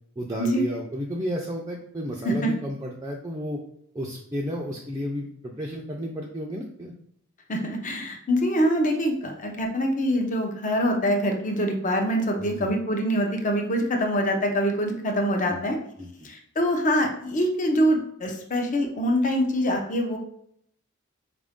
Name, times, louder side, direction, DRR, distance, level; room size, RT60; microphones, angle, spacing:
voice 1, 0.2-3.6 3.9-6.9 12.4-12.7 15.5-15.6 16.0-16.3, equal, 15° right, -2 dB, 0.4 m, -32 dB
voice 2, 7.5-15.8 16.2-20.2, equal, 40° left, 3 dB, 0.6 m, -24 dB
4.6 x 2.5 x 3.5 m, 0.70 s
head